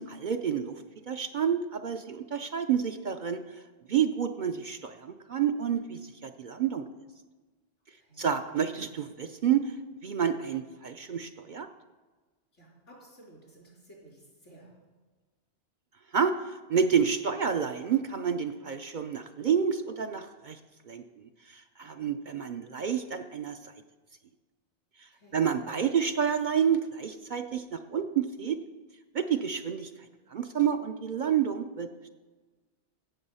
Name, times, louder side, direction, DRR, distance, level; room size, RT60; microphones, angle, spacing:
voice 1, 0.1-3.4 3.9-6.9 8.2-9.7 10.0-11.7 16.1-16.3 16.7-20.6 20.9-21.0 21.5-23.7 25.3-28.6 29.1-29.9 30.3-31.9, right 7 dB, 55° right, 7 dB, 0.6 m, -29 dB
voice 2, 7.9-8.4 12.5-14.7 25.1-25.5, right 1 dB, 90° left, -4 dB, 4.2 m, -54 dB
16.0 x 7.0 x 5.5 m, 1.3 s
omnidirectional pair, 1.2 m